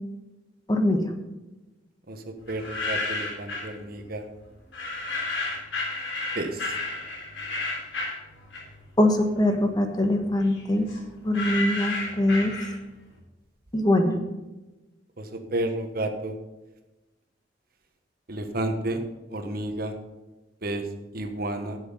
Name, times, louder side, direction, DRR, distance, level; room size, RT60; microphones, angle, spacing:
voice 1, 0.7-1.0 9.0-10.9 11.2-12.5 13.7-14.2, left 1 dB, 20° left, 5 dB, 1.2 m, -22 dB
sound 1, 2.5-3.7 4.7-8.9 9.3-13.0, left 2 dB, 90° left, 3.7 m, -32 dB
voice 2, 2.5-4.3 6.3-6.7 15.2-16.3 18.3-19.0 19.3-19.9 20.6-20.8 21.1-21.8, right 1 dB, 55° right, 6 dB, 1.2 m, -31 dB
10.5 x 7.8 x 5.4 m, 1.1 s
head